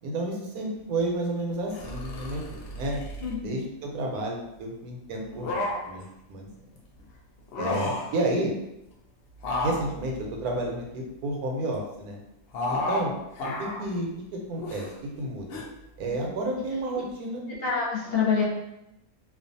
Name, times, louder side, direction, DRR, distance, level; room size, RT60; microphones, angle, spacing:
voice 1, 0.0-3.0 3.4-6.5 7.6-8.5 9.6-12.2 12.7-13.1 13.4-14.1 14.5-14.9 15.2-15.6 16.0-17.4, right 2 dB, 85° right, 0 dB, 1.1 m, -31 dB
sound 1, 1.7-3.4 5.2-6.0 7.4-8.2 9.4-11.2 12.5-13.1 13.4-13.9 14.6-14.9 15.5-15.6, left 2 dB, 80° left, 0.5 m, -32 dB
voice 2, 3.2-3.6 16.1-16.3 17.6-18.4, left 6 dB, 50° left, -7 dB, 0.8 m, -27 dB
2.5 x 2.3 x 2.5 m, 0.86 s
omnidirectional pair, 1.6 m